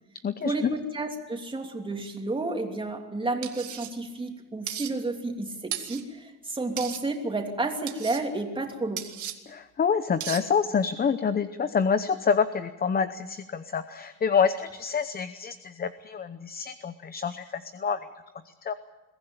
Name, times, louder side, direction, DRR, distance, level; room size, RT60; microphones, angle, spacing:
voice 1, 0.4-9.0, right 2 dB, 15° right, 3 dB, 2.9 m, -31 dB
sound 1, 3.4-3.9 4.7-4.9 5.7-6.0 6.8-7.0 7.9-8.2 9.0-9.4 10.2-10.4, right 11 dB, 65° right, 2.0 m, -35 dB
voice 2, 9.5-18.0 18.6-18.7, left 6 dB, 30° left, 12 dB, 0.8 m, -27 dB
22.5 x 15.0 x 9.0 m, 1.1 s
cardioid pair, 130°, 32 cm